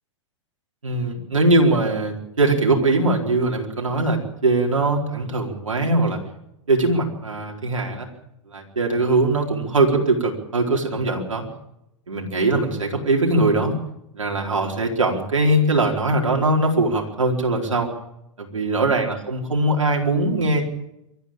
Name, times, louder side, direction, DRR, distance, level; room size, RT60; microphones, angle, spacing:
voice 1, 0.8-6.2 6.7-8.1 8.5-11.5 12.1-13.8 14.1-17.9 18.4-20.6, right 2 dB, 85° right, 1 dB, 4.4 m, -21 dB
24.5 x 13.5 x 8.8 m, 0.82 s
hypercardioid pair, 105°, 16 cm